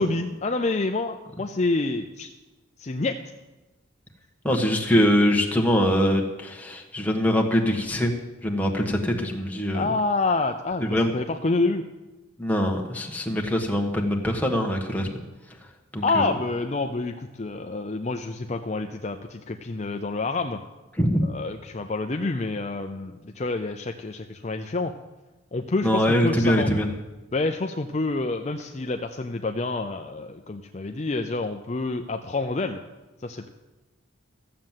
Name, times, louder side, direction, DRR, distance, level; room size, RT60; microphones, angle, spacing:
voice 1, 0.0-2.3 2.8-3.2 9.7-11.9 16.0-20.6 21.2-24.9 25.5-26.7 27.3-32.8 33.2-33.5, left 3 dB, 35° left, 5 dB, 0.5 m, -28 dB
voice 2, 4.4-8.1 8.4-9.9 10.8-11.1 12.4-15.1 15.9-16.3 21.0-21.2 25.8-26.9, equal, 10° left, 1 dB, 1.4 m, -23 dB
14.5 x 7.7 x 7.4 m, 1.1 s
head